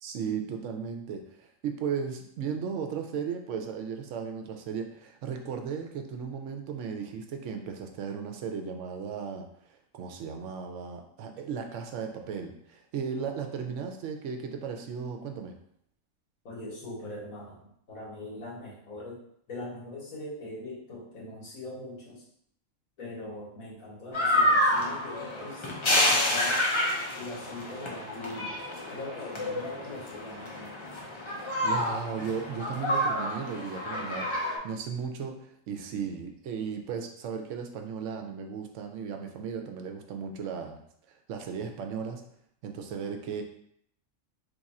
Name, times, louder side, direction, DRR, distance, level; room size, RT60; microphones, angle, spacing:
voice 1, 0.0-9.5 9.9-15.5 31.6-40.8 41.1-42.2 42.6-43.4, right 6 dB, 70° right, 4 dB, 0.9 m, -36 dB
voice 2, 16.4-19.2 19.5-22.2 23.0-26.6 27.1-28.5 28.9-30.7, left 1 dB, 85° left, -5 dB, 1.7 m, -41 dB
sound 1, 24.1-34.6, left 1 dB, 40° left, 0.4 m, -29 dB
3.2 x 2.4 x 4.1 m, 0.69 s
omnidirectional pair, 1.4 m